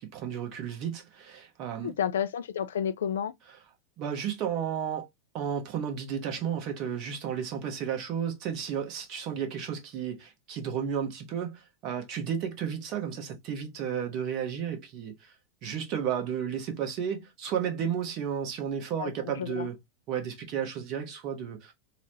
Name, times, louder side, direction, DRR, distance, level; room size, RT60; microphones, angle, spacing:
voice 1, 0.0-1.9 4.0-5.1 5.3-15.3 15.6-19.8 20.1-21.7, right 8 dB, 40° right, 0.9 m, -33 dB
voice 2, 1.8-3.3 19.0-19.7, left 8 dB, 60° left, 0.3 m, -31 dB
3.0 x 2.1 x 2.9 m
figure-of-eight pair, 90°, 0 cm